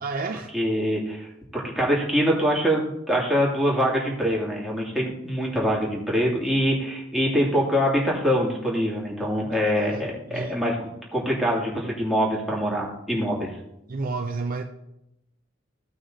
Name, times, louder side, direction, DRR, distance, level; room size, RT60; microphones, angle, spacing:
voice 1, 0.0-0.5 9.5-10.6 13.9-14.6, right 3 dB, 45° right, 5 dB, 0.5 m, -31 dB
voice 2, 0.5-1.3 1.5-13.6, equal, ahead, -5 dB, 2.5 m, -24 dB
15.5 x 6.0 x 2.8 m, 0.85 s
head